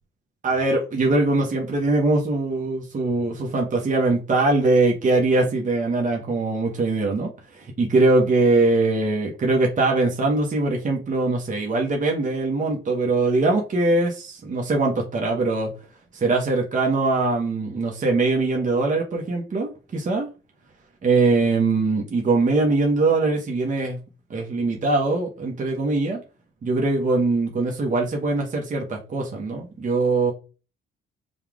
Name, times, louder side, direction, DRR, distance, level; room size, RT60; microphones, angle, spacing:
voice 1, 0.4-15.7 16.1-20.3 21.0-24.0 24.3-26.2 26.6-30.3, right 3 dB, 40° right, 1 dB, 1.1 m, -22 dB
5.5 x 2.4 x 3.5 m, 0.34 s
cardioid pair, 90°, 20 cm